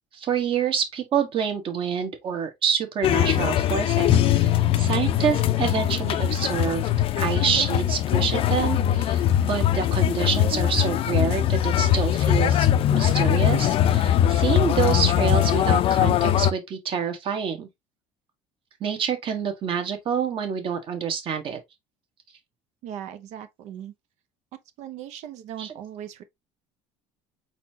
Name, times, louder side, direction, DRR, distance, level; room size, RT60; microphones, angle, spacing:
voice 1, 0.1-6.9 7.2-17.7 18.8-21.6 25.6-25.7, right 7 dB, 45° right, 1.4 m, -27 dB
sound 1, 3.0-16.5, left 11 dB, 50° left, 0.5 m, -21 dB
voice 2, 22.8-23.9 24.8-26.2, right 10 dB, 65° right, 0.8 m, -38 dB
4.3 x 4.2 x 2.8 m
cardioid pair, 130°, 12 cm